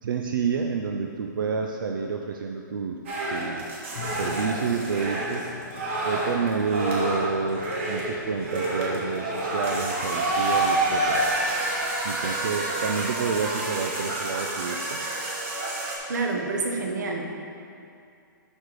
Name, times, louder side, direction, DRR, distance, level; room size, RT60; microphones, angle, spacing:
voice 1, 0.0-3.0 3.3-3.8 4.1-5.5 6.0-11.3 11.6-11.7 12.0-15.3, right 5 dB, 85° right, 3 dB, 0.6 m, -29 dB
sound 1, 3.1-16.0, right 2 dB, 35° right, 1.4 m, -28 dB
sound 2, 3.9-11.0, left 7 dB, 55° left, 0.6 m, -43 dB
voice 2, 16.1-17.2, right 3 dB, 60° right, 1 dB, 1.2 m, -28 dB
11.5 x 4.3 x 4.8 m, 2.5 s
hypercardioid pair, 175°, 11 cm